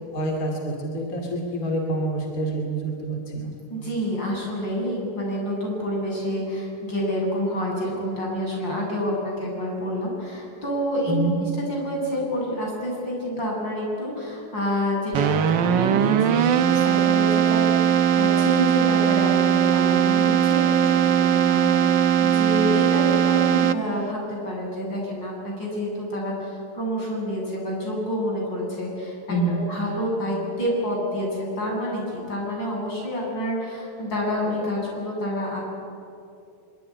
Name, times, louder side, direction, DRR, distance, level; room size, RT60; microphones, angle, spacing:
voice 1, 0.1-3.5 11.1-11.4 29.3-29.6, right 2 dB, 50° left, 1 dB, 3.2 m, -27 dB
voice 2, 3.7-29.2 29.5-35.6, equal, 85° left, -2 dB, 8.6 m, -28 dB
Keyboard (musical), 15.1-24.1, right 9 dB, 85° right, 1.6 m, -20 dB
24.0 x 24.0 x 9.9 m, 2.6 s
omnidirectional pair, 2.0 m